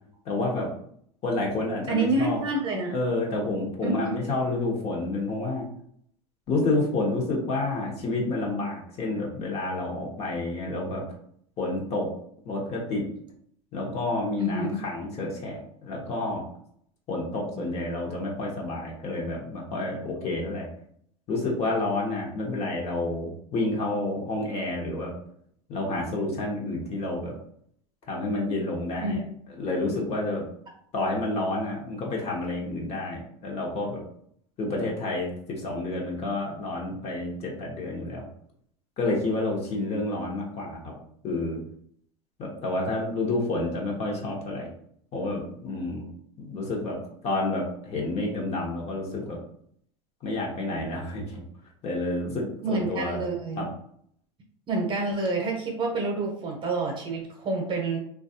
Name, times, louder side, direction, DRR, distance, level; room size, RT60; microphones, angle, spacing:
voice 1, 0.2-0.7 1.2-2.4 2.9-5.7 6.5-11.0 11.6-12.1 12.4-13.1 13.7-16.5 17.1-20.7 21.3-25.1 25.7-27.4 28.1-29.2 29.5-30.4 30.9-34.0 34.6-38.3 39.0-40.9 41.2-41.6 42.4-44.7 45.1-46.1 46.4-47.0 47.2-49.4 50.2-51.4 51.8-53.2 53.6-53.7, left 2 dB, 40° left, -1 dB, 1.0 m, -29 dB
voice 2, 1.9-3.0 3.8-4.2 14.4-14.8 17.5-17.6 29.0-29.2 52.6-53.6 54.7-58.0, right 2 dB, 30° right, 1 dB, 0.9 m, -28 dB
3.0 x 2.4 x 2.7 m, 0.66 s
supercardioid pair, 110°, 16 cm